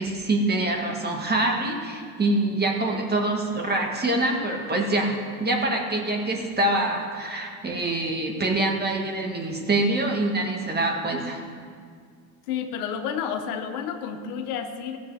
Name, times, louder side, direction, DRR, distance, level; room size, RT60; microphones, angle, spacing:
voice 1, 0.0-11.4, right 2 dB, 20° right, 1 dB, 1.9 m, -25 dB
voice 2, 12.5-15.0, left 7 dB, 85° left, 6 dB, 1.2 m, -30 dB
16.0 x 7.2 x 5.0 m, 2.1 s
supercardioid pair, 100°, 44 cm